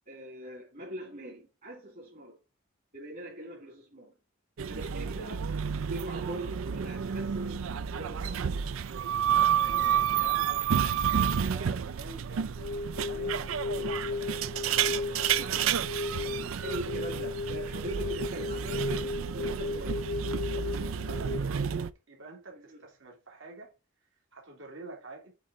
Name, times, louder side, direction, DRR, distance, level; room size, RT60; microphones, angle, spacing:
voice 1, 0.1-2.4 2.9-4.1 4.7-8.6 10.9-11.1 16.6-20.0 22.5-22.8, equal, 50° right, 2.7 m, -42 dB
sound 1, 4.6-21.9, right 8 dB, 90° right, 0.4 m, -30 dB
voice 2, 9.3-14.5 14.8-15.8 16.1-17.1 20.3-23.7 24.3-25.3, right 2 dB, 70° right, 2.6 m, -48 dB
sound 2, 12.6-21.4, left 3 dB, 50° left, 0.4 m, -35 dB
8.3 x 3.7 x 5.0 m
head